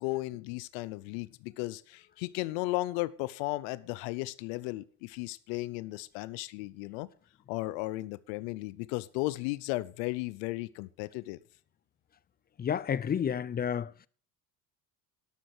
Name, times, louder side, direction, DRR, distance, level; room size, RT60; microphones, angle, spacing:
voice 1, 0.0-7.1 7.5-11.4, left 20 dB, 90° left, 0.6 m, -35 dB
voice 2, 12.6-13.9, left 8 dB, 25° left, 0.5 m, -30 dB
12.5 x 6.3 x 5.9 m
supercardioid pair, 90°, 39 cm